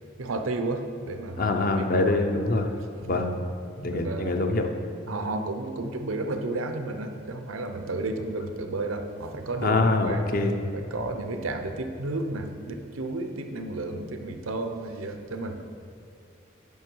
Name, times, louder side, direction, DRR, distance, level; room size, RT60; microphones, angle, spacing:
voice 1, 0.2-2.1 3.0-3.2 3.9-4.4 5.1-10.3 10.7-15.6, right 2 dB, 85° right, 6 dB, 0.7 m, -32 dB
voice 2, 1.4-2.7 3.1-3.3 3.8-4.7 9.6-10.5 13.9-14.0, left 2 dB, 45° left, 5 dB, 0.6 m, -24 dB
9.2 x 5.9 x 4.6 m, 2.5 s
head